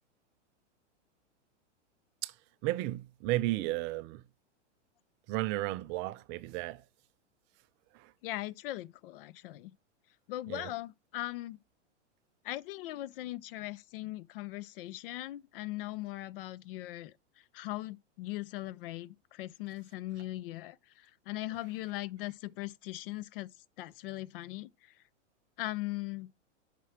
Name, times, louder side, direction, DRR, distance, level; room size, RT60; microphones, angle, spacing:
voice 1, 2.6-4.2 5.3-6.8 10.5-10.7, right 17 dB, 30° right, 0.5 m, -33 dB
voice 2, 8.2-9.7 10.3-11.6 12.4-17.1 17.5-23.5 23.8-24.9 25.6-26.3, left 17 dB, 50° left, 0.5 m, -39 dB
7.3 x 6.0 x 7.2 m
hypercardioid pair, 125°, 36 cm